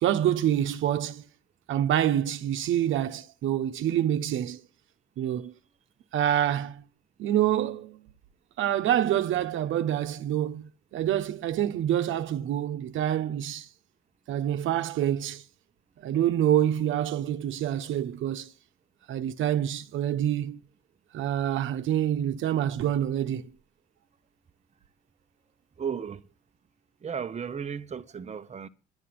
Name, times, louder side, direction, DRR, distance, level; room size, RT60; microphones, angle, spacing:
voice 1, 0.0-1.2 1.7-4.6 5.2-5.5 6.1-6.8 7.2-8.1 8.6-13.7 14.3-15.4 16.0-18.5 19.1-20.6 21.1-23.5, right 11 dB, 80° right, 1.1 m, -27 dB
voice 2, 25.8-26.2 27.0-28.7, right 7 dB, 35° right, 1.0 m, -34 dB
11.0 x 10.5 x 7.7 m
cardioid pair, 90°, 20 cm